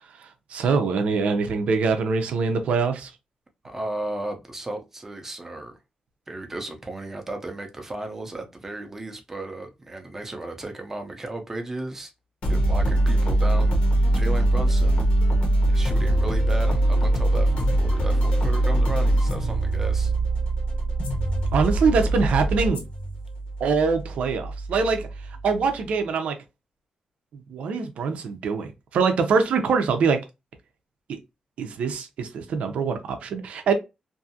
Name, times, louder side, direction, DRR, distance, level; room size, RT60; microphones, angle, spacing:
voice 1, 0.5-3.1 21.5-22.8 23.6-25.1 25.4-26.4 27.5-30.2 31.6-33.7, right 5 dB, 80° right, 0.6 m, -23 dB
voice 2, 3.6-5.8 6.3-12.1 12.5-13.7 14.1-15.1 15.7-20.1, right 2 dB, 20° right, 0.6 m, -34 dB
sound 1, 12.4-25.8, right 1 dB, 65° left, 1.0 m, -22 dB
2.6 x 2.4 x 2.6 m
wide cardioid pair, 145°, 2 cm